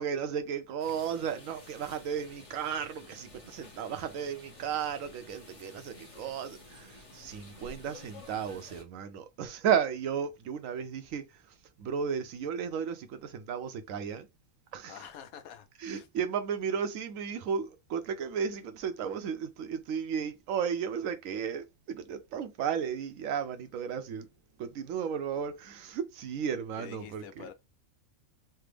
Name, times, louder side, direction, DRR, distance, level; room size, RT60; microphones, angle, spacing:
voice 1, 0.0-14.3 14.7-15.0 15.8-24.3 24.6-27.5, right 7 dB, 75° right, 0.9 m, -34 dB
sound 1, 0.8-8.8, left 2 dB, 30° left, 0.8 m, -51 dB
voice 2, 14.9-16.1 26.7-27.5, left 8 dB, 85° left, 1.1 m, -47 dB
3.4 x 2.0 x 3.2 m
omnidirectional pair, 1.5 m